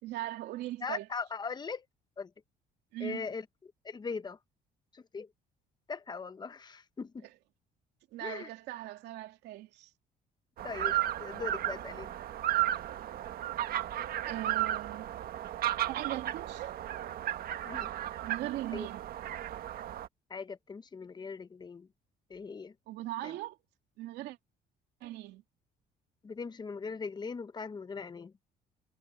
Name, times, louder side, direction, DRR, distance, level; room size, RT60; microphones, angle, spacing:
voice 1, 0.0-1.1 2.9-3.3 8.1-9.9 14.2-15.1 15.8-16.8 18.2-19.1 22.9-23.6 24.0-24.4 25.0-25.4, right 15 dB, 85° right, 2.8 m, -39 dB
voice 2, 0.8-1.8 2.2-2.3 3.0-4.4 4.9-5.3 5.9-7.3 8.2-8.5 10.6-12.1 17.7-17.9 18.7-18.9 20.3-21.9 22.3-22.7 23.2-23.4 26.2-28.3, left 5 dB, 25° left, 0.9 m, -40 dB
sound 1, 10.6-20.1, right 13 dB, 60° right, 1.3 m, -34 dB
cardioid pair, 110°, 17 cm